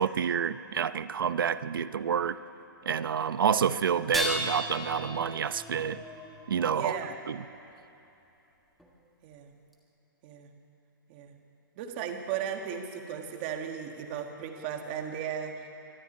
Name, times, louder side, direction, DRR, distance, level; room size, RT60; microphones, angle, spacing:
voice 1, 0.0-2.4 2.8-6.0 6.5-7.0 7.3-7.4, right 7 dB, 70° right, 14 dB, 0.8 m, -28 dB
sound 1, 4.0-7.2 8.8-8.9 9.7-9.8, left 1 dB, ahead, 1.4 m, -36 dB
voice 2, 6.7-7.2 9.2-9.5 10.2-10.5 11.1-11.4 11.8-15.7, right 8 dB, 25° right, 4 dB, 1.7 m, -36 dB
24.0 x 13.5 x 9.7 m, 2.9 s
hypercardioid pair, 170°, 12 cm